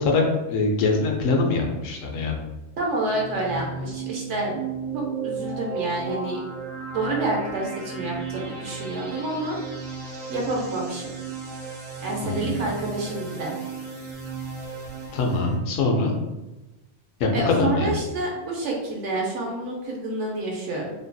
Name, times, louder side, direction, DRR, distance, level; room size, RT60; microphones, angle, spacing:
voice 1, 0.0-2.4 12.2-12.6 15.1-16.1 17.2-17.9, left 3 dB, 85° left, 1 dB, 0.9 m, -23 dB
voice 2, 2.8-4.6 4.9-6.4 6.9-9.6 10.3-11.1 12.0-13.5 17.3-20.9, right 2 dB, 75° right, -1 dB, 1.0 m, -28 dB
sound 1, 3.0-15.6, right 5 dB, 55° right, 0.9 m, -34 dB
2.8 x 2.6 x 2.2 m, 1.1 s
omnidirectional pair, 1.3 m